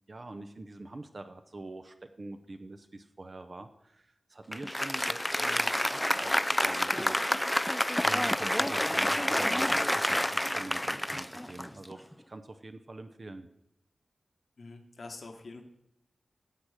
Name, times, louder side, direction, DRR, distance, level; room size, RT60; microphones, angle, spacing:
voice 1, 0.1-7.2 8.0-13.5, right 2 dB, 40° right, 8 dB, 0.6 m, -45 dB
Applause, 4.5-12.1, left 1 dB, 10° left, 0.3 m, -28 dB
voice 2, 14.6-15.6, left 3 dB, 60° left, 5 dB, 1.3 m, -45 dB
16.0 x 6.1 x 4.9 m, 0.78 s
wide cardioid pair, 105°, 0 cm